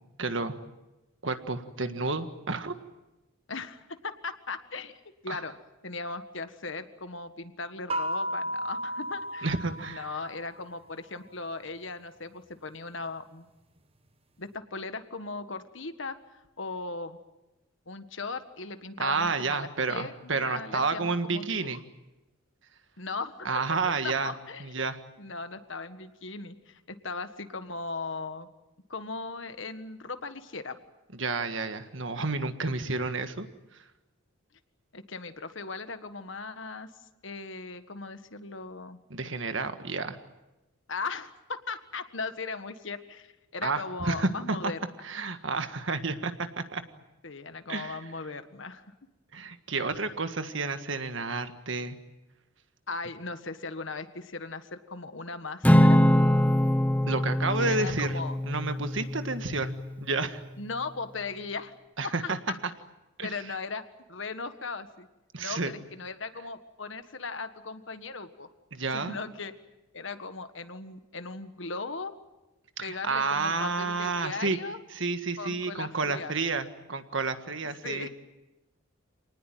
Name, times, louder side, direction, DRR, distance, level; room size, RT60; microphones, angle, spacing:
voice 1, 0.2-0.5 1.2-2.7 5.3-5.4 9.4-10.1 19.0-21.8 23.4-24.3 24.6-25.0 31.2-33.5 39.1-40.2 43.6-44.6 45.0-46.8 47.7-48.0 49.3-52.0 57.1-58.2 58.5-60.4 62.0-62.4 63.2-63.3 65.3-65.7 68.7-69.2 72.8-74.6 74.9-78.1, right 3 dB, 65° right, 9 dB, 1.7 m, -30 dB
voice 2, 3.5-5.5 5.8-9.5 9.9-13.5 14.4-17.2 17.9-21.8 23.0-23.5 24.0-24.7 25.2-28.5 28.9-30.8 34.9-36.9 37.2-39.0 40.9-44.8 47.2-48.9 52.9-56.0 57.6-58.4 60.6-61.7 62.0-62.6 63.2-63.8 64.1-65.1 65.4-68.5 68.9-69.5 69.9-72.1 72.8-74.8 75.4-76.3 77.6-78.1, left 4 dB, 65° left, 10 dB, 1.6 m, -38 dB
sound 1, 7.9-10.6, equal, 30° right, 1.1 m, -34 dB
Acoustic guitar / Strum, 55.6-60.1, equal, 5° left, 0.9 m, -23 dB
27.0 x 19.5 x 9.3 m, 1.0 s
head